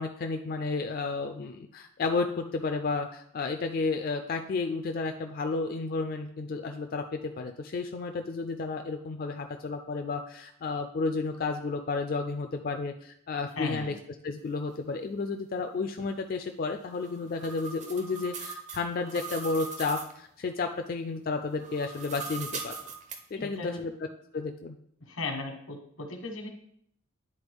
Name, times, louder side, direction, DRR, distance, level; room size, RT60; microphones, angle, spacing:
voice 1, 0.0-13.9 14.2-22.7 23.3-23.9 24.3-24.8, left 3 dB, 45° left, 5 dB, 0.3 m, -32 dB
voice 2, 13.6-14.0 23.3-23.9 25.0-26.5, left 3 dB, 90° left, 3 dB, 1.3 m, -37 dB
sound 1, 16.8-20.2 21.5-23.2, right 4 dB, 35° right, 0.6 m, -40 dB
9.8 x 4.0 x 3.5 m, 0.69 s
head